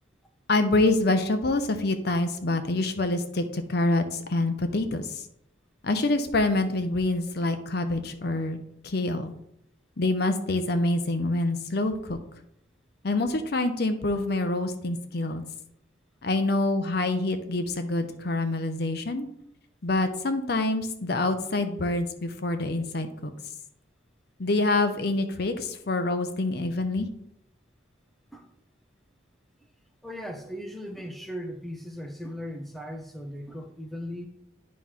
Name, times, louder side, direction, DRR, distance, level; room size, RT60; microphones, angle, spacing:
voice 1, 0.5-5.2 5.8-8.6 8.8-9.3 10.0-12.2 13.0-15.4 16.2-19.3 19.8-23.3 24.4-27.1, left 2 dB, 55° left, 8 dB, 0.7 m, -26 dB
voice 2, 30.0-34.3, equal, ahead, 3 dB, 0.7 m, -38 dB
9.4 x 3.2 x 5.7 m, 0.75 s
head